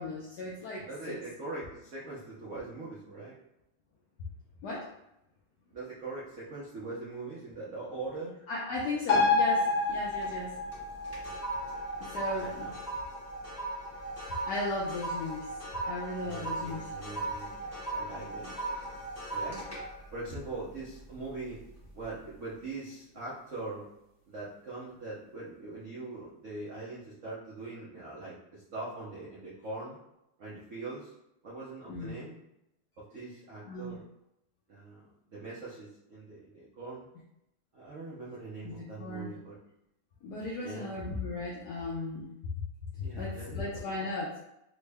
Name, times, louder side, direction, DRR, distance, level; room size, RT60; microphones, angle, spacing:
voice 1, 0.0-1.2 4.6-4.8 8.5-10.5 12.1-12.7 14.5-15.5 15.8-16.8 31.9-32.1 33.7-34.0 38.6-39.3 40.2-42.3 42.6-42.7 42.9-44.3, left 2 dB, 80° left, -4 dB, 0.9 m, -36 dB
voice 2, 0.8-3.4 5.7-8.4 12.1-12.7 16.2-18.7 19.3-19.6 20.1-21.6 21.9-23.9 24.3-30.0 30.4-31.1 31.4-32.4 33.0-34.0 34.7-37.1 37.7-39.6 40.6-41.0 43.0-43.9, right 3 dB, 85° right, -7 dB, 0.6 m, -42 dB
sound 1, 9.1-16.0 16.4-16.5, left 3 dB, 55° left, 1.0 m, -31 dB
sound 2, 9.9-10.4 10.7-21.3 21.7-22.0, right 2 dB, 15° left, 0.5 m, -38 dB
3.6 x 2.1 x 3.3 m, 0.84 s
omnidirectional pair, 2.3 m